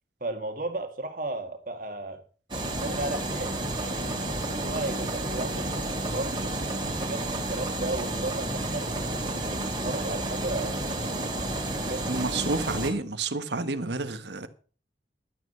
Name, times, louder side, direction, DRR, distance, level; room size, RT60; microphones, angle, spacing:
voice 1, 0.2-2.2 2.7-8.9 9.3-12.5, right 2 dB, 50° right, 2.0 m, -35 dB
sound 1, 2.5-12.9, right 1 dB, 25° right, 2.9 m, -31 dB
voice 2, 12.1-14.5, right 3 dB, 70° right, 1.2 m, -30 dB
12.0 x 9.6 x 5.6 m
head